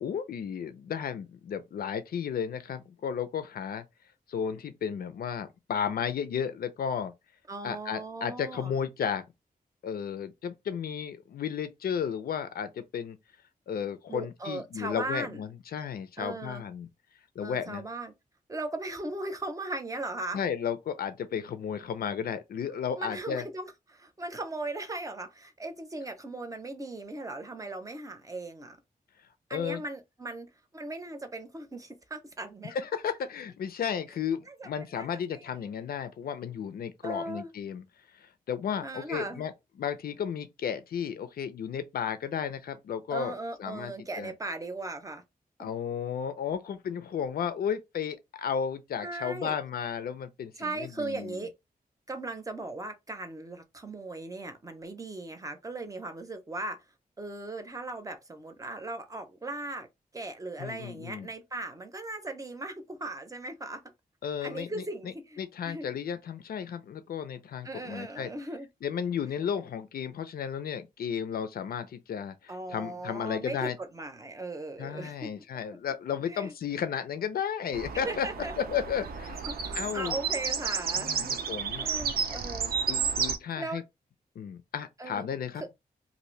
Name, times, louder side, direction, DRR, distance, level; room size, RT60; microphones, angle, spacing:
voice 1, 0.0-3.8 4.3-7.1 7.6-9.2 9.8-13.2 13.7-16.9 17.4-17.8 20.3-23.4 29.5-29.8 32.7-37.8 38.1-39.5 39.8-44.3 45.6-51.4 60.6-61.3 64.2-68.3 68.8-73.8 74.8-78.3 78.6-79.4 79.7-80.2 81.0-81.8 82.9-83.8 84.4-85.6, left 7 dB, 85° left, 0.4 m, -33 dB
voice 2, 7.5-8.7 14.1-15.4 16.2-16.6 17.4-18.1 18.5-20.4 22.9-28.8 29.5-32.7 34.5-35.4 37.0-37.5 38.8-39.5 43.1-45.2 45.6-45.7 49.0-49.6 50.6-51.5 52.1-56.8 57.2-59.9 60.1-63.8 64.4-65.9 67.6-68.7 72.5-75.3 76.3-76.5 78.0-78.5 79.4-81.4 81.8-82.7 83.0-83.2 83.6-83.8 85.0-85.3 85.6-85.7, right 2 dB, 20° right, 0.6 m, -38 dB
sound 1, 77.7-83.4, right 6 dB, 80° right, 0.5 m, -32 dB
2.7 x 2.5 x 3.1 m
wide cardioid pair, 125°, 15 cm